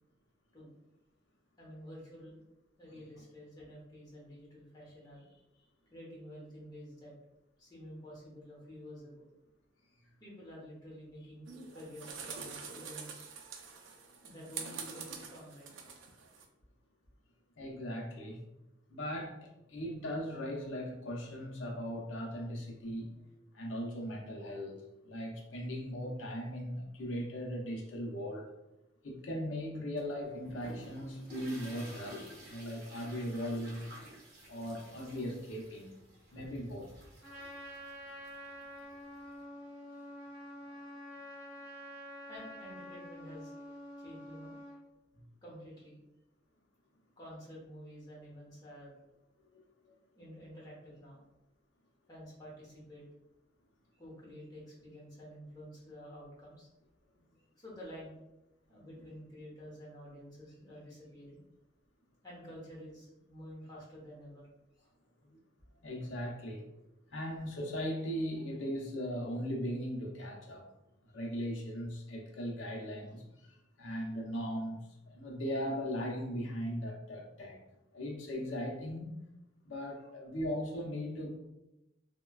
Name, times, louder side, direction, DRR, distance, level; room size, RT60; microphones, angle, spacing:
voice 1, 1.6-2.4 2.8-7.1 7.6-9.3 10.2-13.3 14.2-15.7 42.3-43.5 44.0-44.6 45.4-46.0 47.2-48.9 50.1-51.2 52.1-53.0 53.9-56.7 57.6-58.1 58.7-61.4 62.2-64.5 64.7-64.9 79.9-80.1, equal, 20° left, -6 dB, 1.0 m, -50 dB
sound 1, 11.5-16.4, right 5 dB, 85° right, 0.4 m, -45 dB
voice 2, 17.6-18.4 18.9-23.1 23.5-28.5 29.0-33.9 34.5-35.9 36.3-36.9 49.5-50.0 59.0-59.1 65.8-66.7 67.1-70.6 71.0-74.8 75.1-77.6 77.9-79.2 79.6-81.4, equal, 80° left, 0 dB, 0.6 m, -38 dB
sound 2, 30.0-39.4, right 1 dB, 55° right, 0.8 m, -53 dB
Trumpet, 37.2-44.8, equal, 5° right, 0.9 m, -48 dB
3.0 x 2.2 x 2.3 m, 0.91 s
head